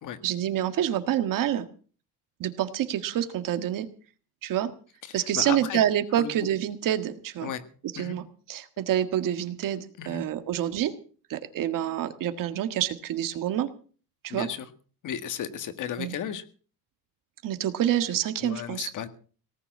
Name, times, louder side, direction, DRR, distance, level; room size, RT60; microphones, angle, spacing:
voice 1, 0.2-1.7 2.4-3.9 4.4-4.7 5.1-7.5 7.9-10.9 11.3-13.7 14.2-14.5 16.0-16.2 17.4-18.9, right 11 dB, 60° right, 10 dB, 1.7 m, -27 dB
voice 2, 5.1-5.8 6.1-6.3 7.4-7.6 7.9-8.1 10.0-10.2 14.3-14.7 15.0-16.4 18.4-19.1, left 9 dB, 55° left, 10 dB, 1.8 m, -34 dB
18.5 x 7.0 x 9.7 m, 0.42 s
cardioid pair, 165°, 37 cm